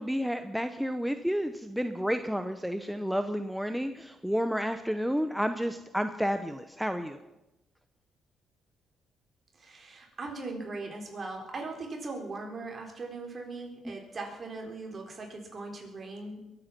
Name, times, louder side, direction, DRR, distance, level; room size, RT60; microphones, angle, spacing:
voice 1, 0.0-7.2 13.9-14.0, equal, ahead, 8 dB, 0.8 m, -31 dB
voice 2, 9.6-16.5, right 3 dB, 40° right, 1 dB, 4.0 m, -39 dB
22.0 x 9.0 x 6.0 m, 0.98 s
cardioid pair, 90°, 0 cm